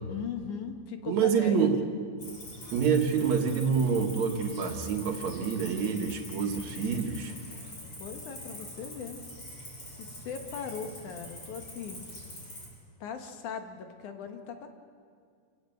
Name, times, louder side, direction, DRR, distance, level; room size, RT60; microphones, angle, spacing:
voice 1, 0.1-1.7 8.0-9.2 9.9-12.0 13.0-14.7, left 7 dB, 70° left, 5 dB, 2.9 m, -39 dB
voice 2, 1.1-1.8 2.7-7.3, right 6 dB, 65° right, 3 dB, 2.9 m, -27 dB
Cricket, 2.2-12.7, left 1 dB, 40° left, 8.3 m, -44 dB
28.0 x 16.5 x 7.8 m, 2.2 s
omnidirectional pair, 3.7 m